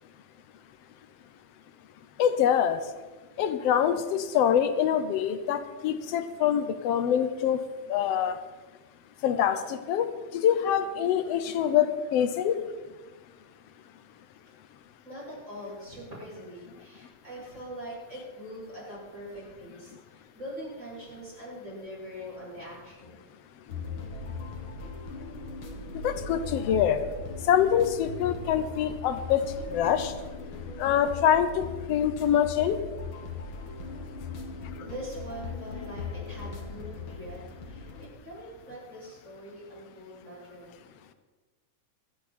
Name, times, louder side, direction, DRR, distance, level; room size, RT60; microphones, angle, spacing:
voice 1, 2.2-2.8 3.4-7.6 7.9-8.4 9.2-10.1 10.3-12.6 26.0-27.0 27.5-29.4 29.7-30.1 30.8-32.8, left 9 dB, 70° left, 11 dB, 1.6 m, -25 dB
voice 2, 15.0-23.2 34.8-37.4 37.7-40.8, equal, 20° right, -7 dB, 7.1 m, -43 dB
sound 1, 23.7-38.1, left 4 dB, 45° left, 2.3 m, -39 dB
24.5 x 10.0 x 4.3 m, 1.2 s
omnidirectional pair, 3.6 m